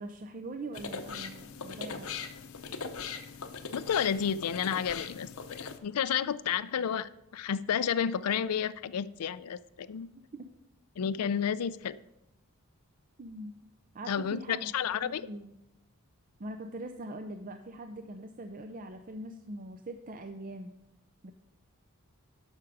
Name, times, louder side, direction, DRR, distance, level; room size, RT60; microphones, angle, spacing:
voice 1, 0.0-2.1 10.3-10.5 13.2-13.5 13.9-14.7 15.0-15.5 16.4-20.7 21.2-21.3, right 1 dB, 40° right, 6 dB, 0.5 m, -42 dB
sound 1, 0.7-5.8, left 5 dB, 65° left, 0.8 m, -40 dB
voice 2, 3.7-10.1 11.0-12.0 14.1-15.3, left 8 dB, 90° left, 16 dB, 0.4 m, -31 dB
12.0 x 5.9 x 4.9 m, 0.89 s
head